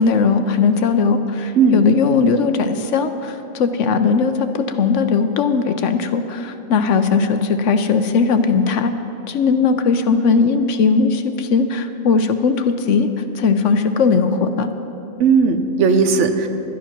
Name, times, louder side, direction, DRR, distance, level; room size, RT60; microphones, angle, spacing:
voice 1, 0.0-8.9 9.3-13.1 13.3-14.7, left 5 dB, 65° left, 9 dB, 0.9 m, -18 dB
voice 2, 15.2-16.5, right 5 dB, 60° right, 8 dB, 1.0 m, -16 dB
11.5 x 10.5 x 5.9 m, 2.8 s
omnidirectional pair, 1.5 m